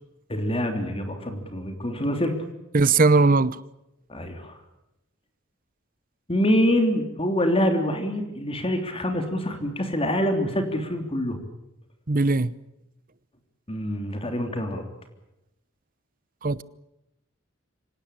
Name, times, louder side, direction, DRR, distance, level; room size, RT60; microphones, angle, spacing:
voice 1, 0.3-2.4 4.1-4.6 6.3-11.4 13.7-14.8, equal, 30° left, 3.2 m, -25 dB
voice 2, 2.7-3.6 12.1-12.5 16.4-16.6, right 3 dB, 45° right, 0.9 m, -19 dB
25.5 x 18.0 x 9.9 m
head